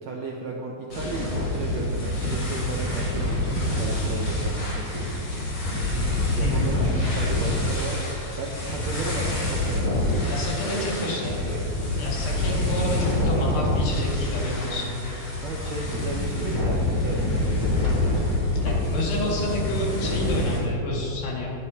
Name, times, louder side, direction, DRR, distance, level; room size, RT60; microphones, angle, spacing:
voice 1, 0.0-5.1 6.3-8.0 8.4-11.6 15.4-19.4, right 3 dB, 75° right, -1 dB, 1.6 m, -35 dB
sound 1, 0.9-20.6, left 1 dB, 45° left, 3.8 m, -26 dB
voice 2, 6.1-6.7 10.2-11.4 12.0-14.8 18.6-21.5, left 2 dB, 85° left, -3 dB, 4.0 m, -30 dB
21.0 x 9.6 x 2.8 m, 2.9 s
omnidirectional pair, 4.1 m